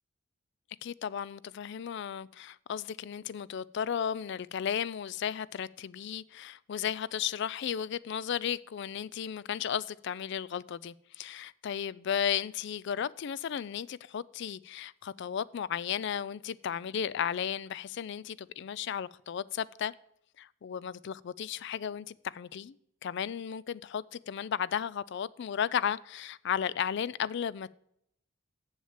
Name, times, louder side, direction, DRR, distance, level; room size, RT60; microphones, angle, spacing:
voice 1, 0.8-19.9 20.4-22.8 23.0-27.7, left 8 dB, 55° left, 0.3 m, -34 dB
7.4 x 7.2 x 7.3 m
head